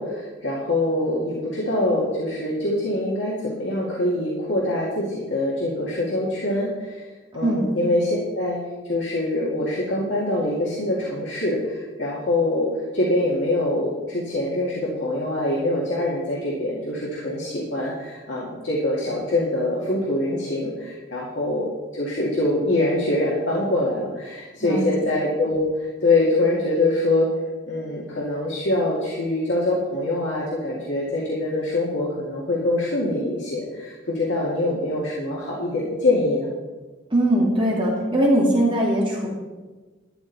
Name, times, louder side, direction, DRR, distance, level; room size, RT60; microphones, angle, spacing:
voice 1, 0.0-6.9 7.3-8.6 8.9-12.7 12.9-21.7 21.9-25.6 26.0-27.3 27.7-36.5, left 1 dB, 65° left, -4 dB, 2.4 m, -24 dB
voice 2, 24.6-25.1 37.1-39.3, right 1 dB, 25° right, -4 dB, 2.6 m, -21 dB
13.0 x 11.0 x 4.2 m, 1.3 s
head